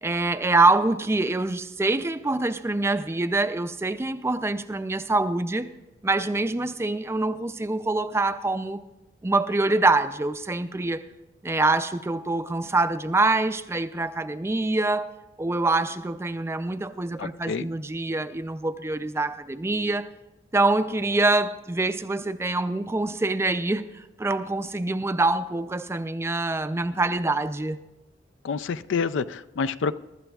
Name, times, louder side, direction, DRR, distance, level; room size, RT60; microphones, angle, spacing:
voice 1, 0.0-5.7 6.0-8.8 9.2-11.1 11.4-15.1 15.4-20.1 20.5-27.8, right 2 dB, 15° right, 0.4 m, -25 dB
voice 2, 17.2-17.7 28.4-30.0, left 5 dB, 80° left, 0.4 m, -28 dB
22.5 x 12.0 x 2.3 m
head